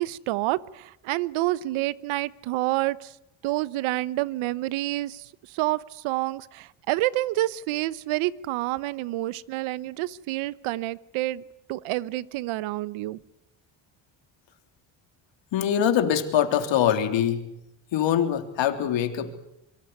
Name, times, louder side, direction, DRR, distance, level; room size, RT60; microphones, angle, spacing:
voice 1, 0.0-3.2 3.4-11.4 11.7-13.2, right 17 dB, 90° right, 19 dB, 1.0 m, -28 dB
voice 2, 15.5-17.4 17.9-19.4, left 9 dB, 70° left, 7 dB, 3.5 m, -23 dB
24.5 x 23.5 x 9.5 m, 0.83 s
cardioid pair, 100°, 47 cm